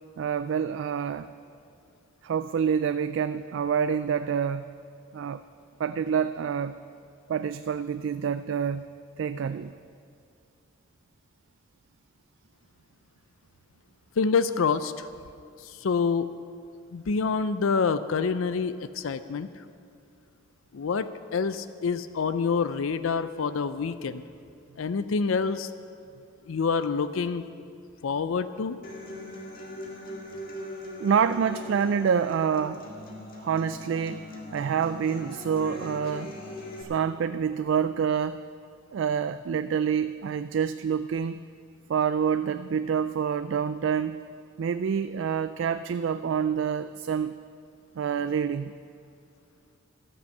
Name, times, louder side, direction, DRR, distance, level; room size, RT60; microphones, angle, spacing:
voice 1, 0.2-1.3 2.2-4.6 5.1-5.4 5.8-6.8 7.3-8.8 9.2-9.7 31.0-32.8 33.4-36.3 36.9-38.4 38.9-41.5 41.9-44.2 44.6-47.3 48.0-48.7, right 7 dB, 65° right, 11 dB, 0.3 m, -27 dB
voice 2, 14.2-15.1 15.6-16.3 16.9-19.6 20.7-24.2 24.8-25.7 26.5-27.4 28.0-28.8, left 5 dB, 80° left, 12 dB, 0.5 m, -27 dB
Human voice / Acoustic guitar, 28.8-36.8, left 1 dB, 45° left, 1.9 m, -40 dB
13.0 x 9.8 x 7.1 m, 2.4 s
head